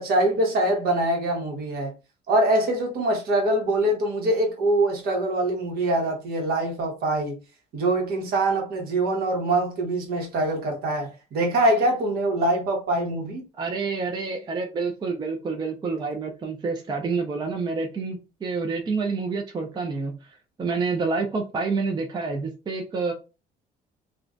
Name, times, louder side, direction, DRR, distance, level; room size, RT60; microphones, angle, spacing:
voice 1, 0.0-1.9 2.3-7.4 7.7-13.4, right 1 dB, 65° right, 1.0 m, -24 dB
voice 2, 13.6-20.3 20.6-23.1, right 4 dB, 25° right, 0.4 m, -28 dB
2.4 x 2.1 x 2.4 m
cardioid pair, 110°, 17 cm